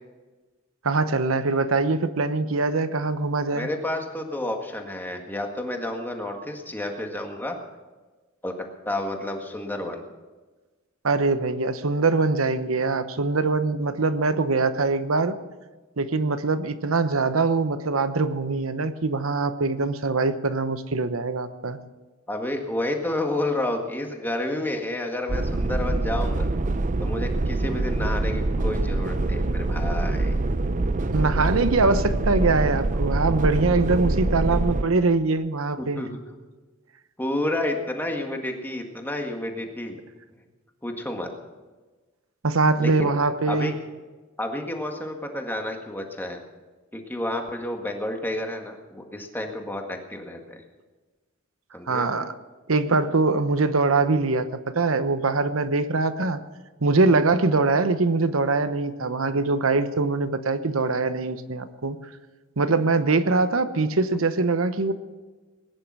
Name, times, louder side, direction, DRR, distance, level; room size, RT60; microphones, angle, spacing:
voice 1, 0.8-3.7 11.0-15.4 16.0-21.8 31.1-36.0 42.4-43.7 51.9-52.3 52.7-54.5 54.7-56.4 56.8-62.0 62.6-64.9, right 3 dB, 85° right, 11 dB, 1.0 m, -23 dB
voice 2, 3.5-7.6 8.4-10.0 22.3-26.5 27.0-30.3 33.8-33.9 35.8-36.2 37.2-40.0 40.8-41.3 42.8-43.1 43.5-43.8 44.4-46.4 46.9-50.6 51.7-52.1, left 1 dB, 10° left, 3 dB, 1.8 m, -30 dB
sound 1, 25.3-34.8, right 2 dB, 40° right, 0.6 m, -25 dB
20.0 x 10.5 x 6.2 m, 1.3 s
head